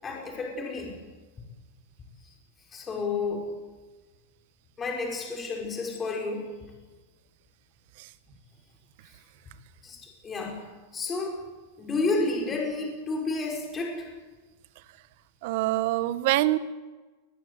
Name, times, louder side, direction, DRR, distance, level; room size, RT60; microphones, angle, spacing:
voice 1, 0.0-0.9 2.2-2.3 2.7-3.5 4.8-6.5 9.8-10.7 10.9-11.4 11.8-14.1, left 3 dB, 20° left, 0 dB, 5.2 m, -31 dB
voice 2, 15.4-16.6, right 16 dB, 55° right, 15 dB, 1.2 m, -24 dB
21.0 x 20.5 x 8.2 m, 1.3 s
supercardioid pair, 145°, 0 cm